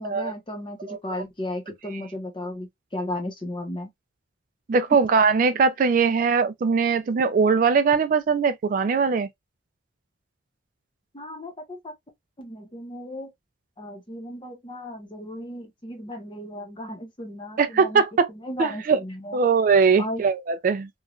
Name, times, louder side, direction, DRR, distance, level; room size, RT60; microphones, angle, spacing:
voice 1, 0.0-3.9 4.9-5.0 11.1-11.9 12.4-13.3 13.8-18.0 18.3-19.4 20.0-20.2, left 1 dB, 25° left, 0.7 m, -35 dB
voice 2, 4.7-9.3 17.6-18.3 18.6-19.0 19.3-20.9, right 5 dB, 45° right, 0.3 m, -21 dB
3.0 x 2.3 x 2.4 m
head